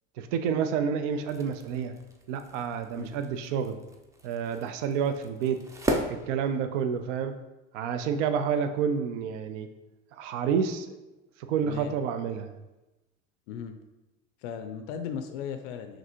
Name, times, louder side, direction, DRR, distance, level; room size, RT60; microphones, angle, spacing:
voice 1, 0.2-1.9 2.3-3.8 4.2-5.6 6.1-7.3 7.7-9.7 10.1-10.9 11.5-12.5, right 7 dB, 70° right, 8 dB, 0.5 m, -29 dB
sound 1, 1.1-7.1, right 1 dB, 10° right, 0.4 m, -37 dB
voice 2, 11.6-11.9 13.5-13.8 14.4-16.0, left 7 dB, 70° left, 8 dB, 0.5 m, -37 dB
5.9 x 2.5 x 2.9 m, 1.0 s
hypercardioid pair, 85°, 38 cm